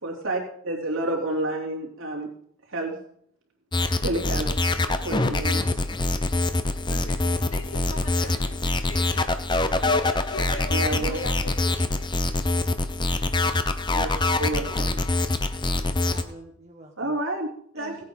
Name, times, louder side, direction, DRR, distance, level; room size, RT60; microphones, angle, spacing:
voice 1, 0.0-2.3 2.7-2.9 4.0-4.5 4.9-5.7 10.7-11.2 13.9-14.1 14.4-15.0 17.0-17.5 17.7-18.0, right 2 dB, 65° right, -1 dB, 3.4 m, -29 dB
sound 1, 3.7-16.2, left 2 dB, 20° left, 0.8 m, -24 dB
voice 2, 6.9-9.3 9.8-12.2, left 2 dB, 80° left, 3 dB, 2.7 m, -39 dB
voice 3, 14.5-14.9 15.6-17.2 17.8-18.0, right 1 dB, 30° right, -1 dB, 1.3 m, -45 dB
17.5 x 8.5 x 5.5 m, 0.67 s
head